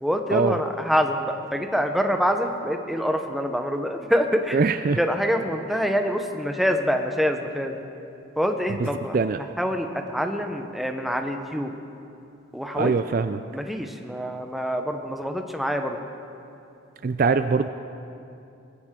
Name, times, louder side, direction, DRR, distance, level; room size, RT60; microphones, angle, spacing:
voice 1, 0.0-4.6 5.0-7.8 8.4-9.2 9.6-11.7 12.5-12.9 13.5-16.0, equal, ahead, 4 dB, 0.8 m, -25 dB
voice 2, 4.5-5.0 8.8-8.9 9.1-9.4 12.8-13.4 17.0-17.7, right 4 dB, 45° right, 10 dB, 0.3 m, -22 dB
20.5 x 16.0 x 3.7 m, 2.7 s
head